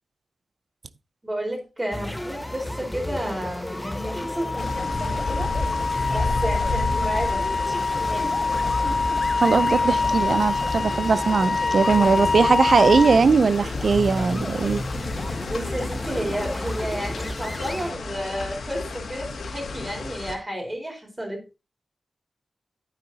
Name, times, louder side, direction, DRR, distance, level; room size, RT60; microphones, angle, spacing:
voice 1, 1.2-5.5 6.1-7.4 7.7-8.4 15.4-21.4, equal, 15° right, 4.4 m, -32 dB
sound 1, 1.9-17.9, left 1 dB, 5° left, 1.0 m, -33 dB
Wind instrument woodwind instrument, 3.8-13.2, left 4 dB, 35° left, 0.4 m, -25 dB
sound 2, 4.6-20.4, left 3 dB, 85° left, 2.2 m, -32 dB
voice 2, 9.4-14.8, right 5 dB, 55° right, 0.6 m, -20 dB
10.5 x 9.4 x 2.8 m
wide cardioid pair, 125°, 0 cm